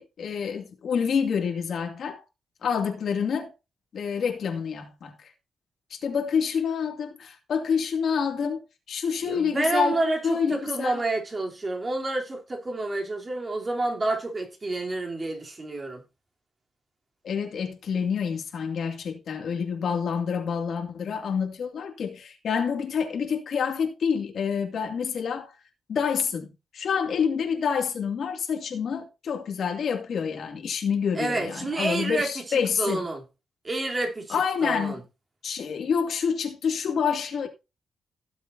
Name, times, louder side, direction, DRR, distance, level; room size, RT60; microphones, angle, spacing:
voice 1, 0.0-2.2 2.6-3.5 3.9-5.1 5.9-8.6 8.9-11.0 17.2-25.5 25.9-26.5 26.7-33.0 34.3-35.0 35.4-37.5, left 6 dB, 70° left, 2.6 m, -27 dB
voice 2, 9.2-16.0 31.1-33.2 33.6-35.0, right 2 dB, 30° right, 3.4 m, -29 dB
17.0 x 7.4 x 2.8 m
cardioid pair, 105°, 0 cm